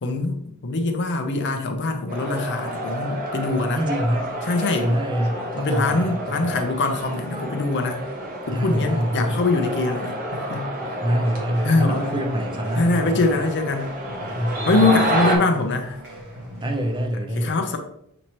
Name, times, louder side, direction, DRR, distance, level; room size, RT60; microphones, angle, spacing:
voice 1, 0.0-3.8 4.5-4.9 5.5-8.1 8.5-10.7 11.6-12.2 12.8-14.0 14.7-16.0 17.4-17.8, left 3 dB, 55° left, 5 dB, 0.6 m, -23 dB
sound 1, 2.1-15.4, equal, 40° right, 0.9 m, -30 dB
voice 2, 3.7-4.2 4.7-6.6 8.5-9.5 10.8-13.2 14.3-14.8 16.6-17.6, right 1 dB, 20° right, 3 dB, 0.6 m, -25 dB
sound 2, 11.5-17.1, equal, 55° right, 1.3 m, -41 dB
6.1 x 2.9 x 3.0 m, 0.75 s
head